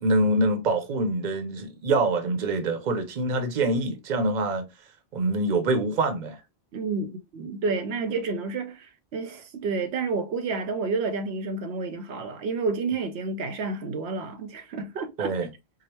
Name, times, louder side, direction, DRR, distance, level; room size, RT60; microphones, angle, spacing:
voice 1, 0.0-4.7 5.1-6.4 15.2-15.5, right 2 dB, 50° right, 0.8 m, -25 dB
voice 2, 6.7-15.3, right 4 dB, 80° right, 0.8 m, -30 dB
4.8 x 2.1 x 2.9 m
omnidirectional pair, 1.1 m